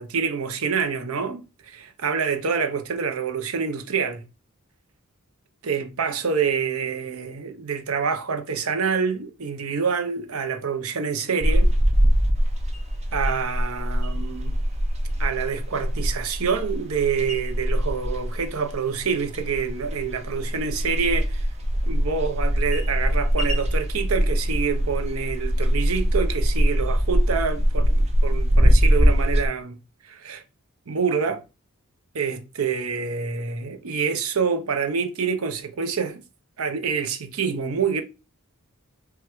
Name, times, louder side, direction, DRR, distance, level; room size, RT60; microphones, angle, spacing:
voice 1, 0.0-4.2 5.6-11.7 13.1-14.6 15.2-21.5 21.9-29.8 30.0-30.4 30.9-31.4 32.1-36.2 36.6-38.0, right 6 dB, 70° right, 0.7 m, -27 dB
sound 1, 11.4-29.5, equal, 30° right, 0.7 m, -22 dB
5.5 x 2.3 x 3.0 m
head